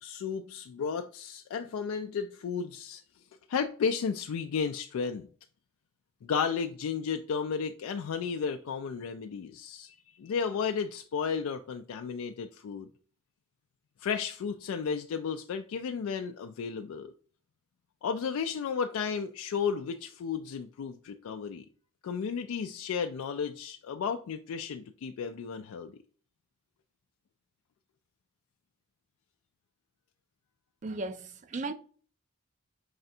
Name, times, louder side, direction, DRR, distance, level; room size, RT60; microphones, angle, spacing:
voice 1, 0.0-3.0 3.5-5.3 6.2-12.9 14.0-17.1 18.0-21.6 22.0-25.9, left 6 dB, 90° left, 0.3 m, -33 dB
voice 2, 30.8-31.7, right 3 dB, 35° right, 0.3 m, -36 dB
4.9 x 3.3 x 2.7 m
head